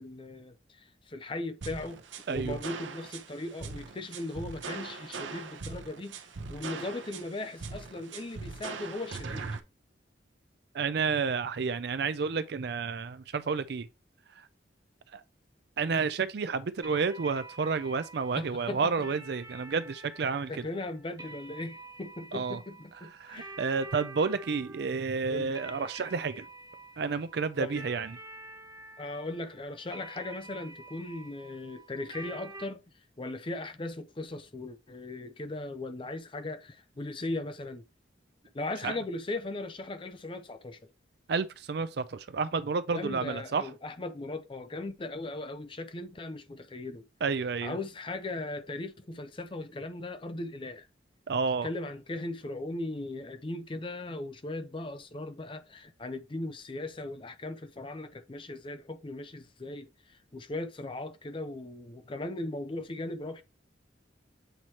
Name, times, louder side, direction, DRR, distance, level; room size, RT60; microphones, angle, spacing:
voice 1, 0.0-2.0 2.3-9.6 18.4-18.9 20.5-23.6 25.3-25.5 27.6-27.8 29.0-32.8 33.2-37.8 38.5-40.8 42.9-47.0 47.6-50.9 51.6-63.4, left 2 dB, 30° left, 0.5 m, -38 dB
sound 1, 1.6-9.6, right 4 dB, 90° right, 0.8 m, -40 dB
voice 2, 2.3-2.6 10.7-13.9 14.4-14.5 15.1-15.2 15.8-20.7 22.3-22.6 23.2-26.5 27.0-28.2 38.8-39.0 41.3-43.7 47.2-47.8 51.3-51.7, right 5 dB, 60° right, 0.4 m, -30 dB
sound 2, 16.8-32.7, right 2 dB, 20° right, 0.8 m, -48 dB
7.9 x 3.0 x 4.2 m
head